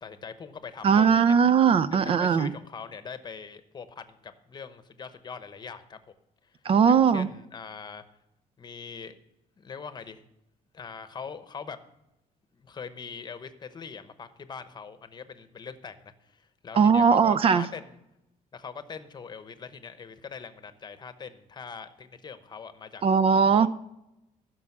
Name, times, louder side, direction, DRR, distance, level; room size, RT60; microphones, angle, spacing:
voice 1, 0.0-1.4 1.9-6.0 6.4-6.5 6.9-8.0 8.6-9.1 9.6-10.2 10.7-11.8 12.5-18.0 18.5-23.0 23.5-23.7, left 6 dB, 30° left, 11 dB, 0.9 m, -42 dB
voice 2, 0.8-2.5 6.7-7.3 16.8-17.6 23.0-23.7, right 6 dB, 40° right, 13 dB, 0.4 m, -20 dB
15.5 x 6.2 x 6.0 m, 0.86 s
cardioid pair, 135°, 14 cm